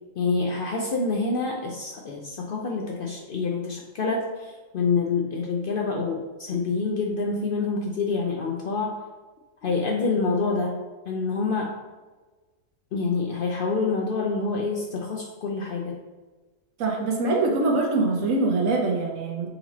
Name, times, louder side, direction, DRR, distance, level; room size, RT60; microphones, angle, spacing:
voice 1, 0.2-9.0 9.6-10.8 11.1-11.7 12.9-16.0, left 4 dB, 60° left, -1 dB, 0.5 m, -27 dB
voice 2, 16.8-19.5, right 3 dB, 80° right, 1 dB, 1.2 m, -23 dB
4.2 x 2.9 x 4.0 m, 1.3 s
omnidirectional pair, 1.4 m